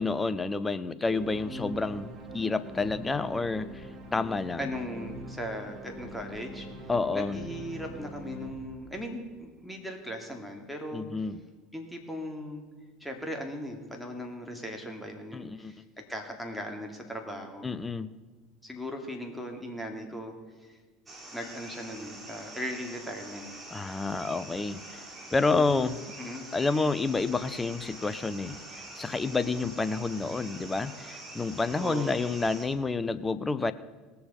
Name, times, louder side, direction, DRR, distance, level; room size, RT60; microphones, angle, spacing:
voice 1, 0.0-4.7 6.9-7.4 10.9-11.4 15.3-15.7 17.6-18.1 23.7-25.0 25.3-26.0 26.5-28.6 29.0-33.7, left 3 dB, 20° left, 14 dB, 0.7 m, -29 dB
sound 1, 1.1-9.5, equal, 35° right, 2.1 m, -43 dB
voice 2, 4.6-6.7 7.1-11.1 11.7-12.6 13.0-17.7 18.6-20.3 20.6-20.8 21.3-23.5 25.5-26.5 31.7-32.2, equal, ahead, 2 dB, 2.6 m, -38 dB
sound 2, 21.1-32.7, right 2 dB, 20° right, 3.1 m, -45 dB
18.5 x 7.0 x 5.4 m, 1.4 s
hypercardioid pair, 75°, 0 cm